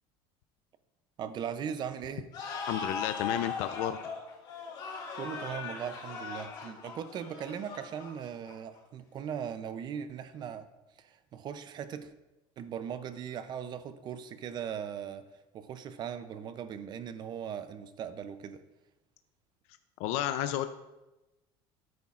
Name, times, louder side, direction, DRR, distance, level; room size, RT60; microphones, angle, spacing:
voice 1, 1.2-2.3 5.1-10.7 11.0-12.1 12.6-15.3 15.5-18.6, right 8 dB, 35° right, 0.5 m, -39 dB
sound 1, 2.3-8.8, left 5 dB, 40° left, 2.7 m, -39 dB
voice 2, 2.7-4.0 20.0-20.7, left 12 dB, 65° left, 0.5 m, -31 dB
12.5 x 9.4 x 2.4 m
cardioid pair, 145°, 12 cm